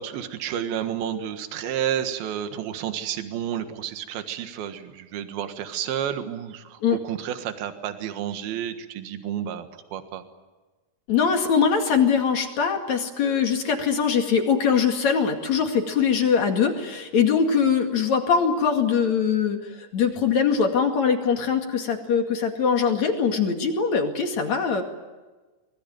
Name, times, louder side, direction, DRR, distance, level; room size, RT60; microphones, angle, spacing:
voice 1, 0.0-10.2, right 10 dB, 70° right, 8 dB, 3.4 m, -31 dB
voice 2, 11.1-24.8, left 6 dB, 50° left, 4 dB, 3.2 m, -22 dB
25.0 x 21.5 x 9.2 m, 1.2 s
omnidirectional pair, 4.6 m